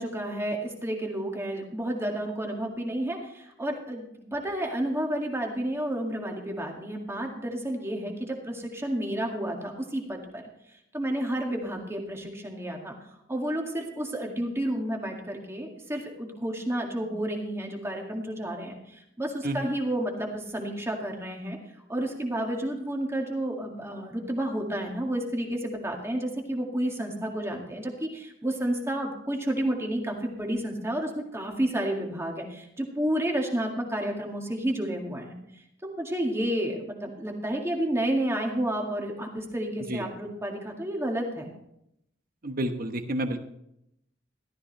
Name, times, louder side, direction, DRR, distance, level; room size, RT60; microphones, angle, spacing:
voice 1, 0.0-10.4 10.9-13.0 13.3-21.6 21.9-35.3 35.8-41.5, right 1 dB, 15° right, 1 dB, 2.0 m, -31 dB
voice 2, 42.4-43.4, right 1 dB, 50° right, 7 dB, 1.1 m, -30 dB
14.5 x 12.5 x 3.3 m, 0.77 s
head